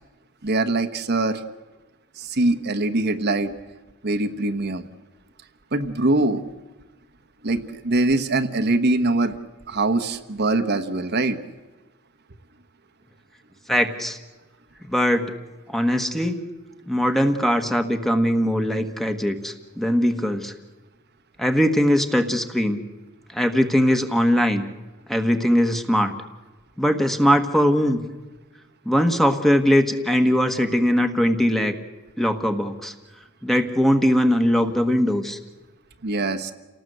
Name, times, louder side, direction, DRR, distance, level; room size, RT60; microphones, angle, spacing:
voice 1, 0.4-1.4 2.2-3.5 4.0-4.8 5.7-6.4 7.4-9.4 9.7-11.4 36.0-36.5, right 2 dB, 55° right, 8 dB, 1.2 m, -22 dB
voice 2, 13.7-14.2 14.9-15.3 15.7-16.4 16.9-20.5 21.4-22.8 23.3-24.6 25.1-26.1 26.8-28.0 28.8-31.7 32.2-32.9 33.4-35.4, equal, ahead, 6 dB, 1.5 m, -20 dB
28.5 x 18.5 x 7.9 m, 1.2 s
head